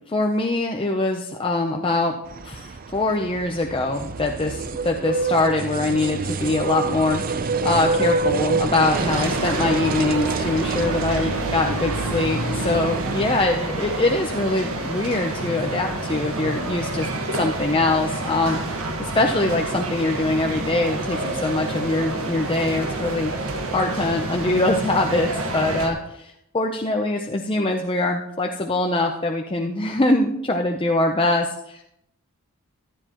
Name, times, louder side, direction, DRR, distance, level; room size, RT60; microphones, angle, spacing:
voice 1, 0.1-2.2 2.4-23.3 23.7-31.8, left 2 dB, 25° left, 2 dB, 0.6 m, -23 dB
sound 1, 2.3-13.4, right 3 dB, 40° right, 0.5 m, -27 dB
sound 2, 8.9-25.9, right 2 dB, 75° right, 1.6 m, -28 dB
Bowed string instrument, 9.3-13.6, right 2 dB, 40° left, 5.7 m, -34 dB
14.5 x 12.0 x 3.0 m, 0.78 s
head